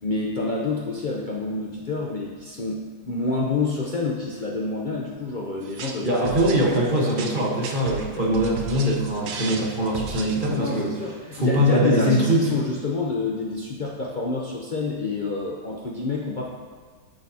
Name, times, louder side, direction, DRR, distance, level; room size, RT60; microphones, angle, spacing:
voice 1, 0.0-7.0 10.5-16.5, left 3 dB, 65° left, -3 dB, 0.4 m, -28 dB
sound 1, 5.6-10.8, right 5 dB, 65° right, 1.1 m, -35 dB
voice 2, 6.0-10.9 11.3-12.6, right 1 dB, 35° right, -3 dB, 1.2 m, -22 dB
10.5 x 6.5 x 2.8 m, 1.5 s
omnidirectional pair, 1.9 m